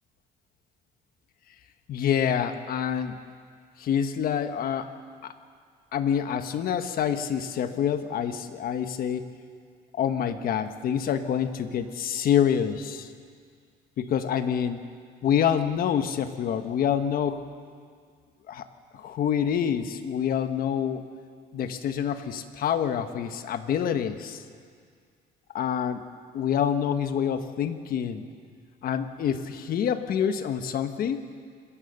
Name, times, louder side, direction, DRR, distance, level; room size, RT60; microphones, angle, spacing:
voice 1, 1.9-3.1 3.8-4.9 5.2-5.3 5.9-9.2 9.9-13.1 14.0-14.8 15.2-17.4 18.5-18.7 18.9-21.0 21.5-24.4 25.5-26.0 26.3-28.2 28.8-31.2, left 8 dB, 60° left, 9 dB, 1.4 m, -27 dB
26.5 x 15.0 x 6.7 m, 2.1 s
cardioid pair, 110°, 17 cm